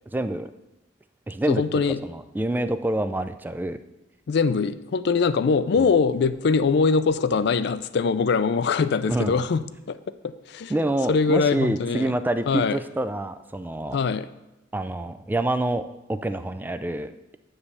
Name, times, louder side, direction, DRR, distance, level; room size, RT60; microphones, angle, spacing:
voice 1, 0.1-0.5 1.3-3.8 5.8-5.9 9.1-9.4 10.7-14.0 14.7-15.8 16.1-17.4, right 1 dB, 10° right, 10 dB, 0.3 m, -27 dB
voice 2, 1.5-2.0 4.3-10.0 10.2-12.1 12.5-12.8 13.9-14.3, left 5 dB, 60° left, 13 dB, 0.4 m, -23 dB
9.7 x 3.3 x 6.9 m, 0.96 s
head